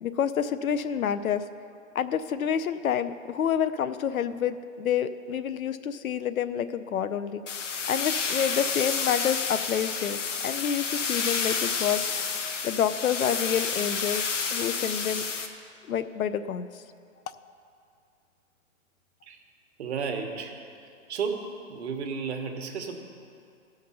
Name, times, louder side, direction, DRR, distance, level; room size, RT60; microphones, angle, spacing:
voice 1, 0.0-1.4 1.9-7.4 7.9-12.0 12.6-14.2 14.5-15.2 15.9-16.7, left 8 dB, 90° left, 13 dB, 0.6 m, -28 dB
sound 1, 7.5-15.5, left 5 dB, 60° left, 1.0 m, -30 dB
voice 2, 19.8-20.6 21.1-23.0, right 5 dB, 55° right, 3 dB, 1.3 m, -33 dB
15.0 x 5.8 x 5.6 m, 2.4 s
hypercardioid pair, 155°, 41 cm